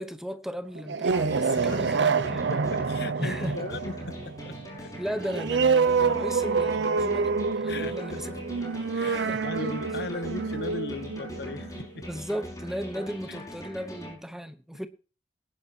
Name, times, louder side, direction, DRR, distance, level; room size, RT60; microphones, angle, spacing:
voice 1, 0.0-2.5 3.2-3.7 5.0-8.3 9.0-9.5 12.1-14.9, equal, ahead, 0.9 m, -36 dB
sound 1, 0.7-12.0, right 5 dB, 90° right, 0.6 m, -27 dB
sound 2, 1.2-14.1, equal, 20° left, 5.5 m, -41 dB
voice 2, 2.1-4.2 4.4-4.6 4.8-4.9 7.7-8.4 8.9-12.0 13.3-13.4, left 3 dB, 65° left, 0.8 m, -38 dB
20.0 x 10.5 x 2.8 m
head